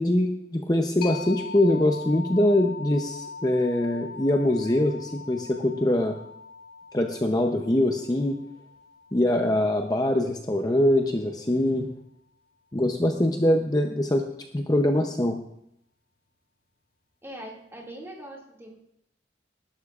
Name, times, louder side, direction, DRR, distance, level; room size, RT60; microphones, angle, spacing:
voice 1, 0.0-6.2 6.9-8.4 9.1-11.9 12.7-14.2 14.5-15.4, left 1 dB, 20° left, 3 dB, 0.7 m, -23 dB
sound 1, 1.0-10.4, left 5 dB, 50° left, 1.9 m, -41 dB
voice 2, 17.2-18.7, right 1 dB, 15° right, -3 dB, 2.2 m, -41 dB
19.5 x 11.5 x 2.5 m, 0.74 s
head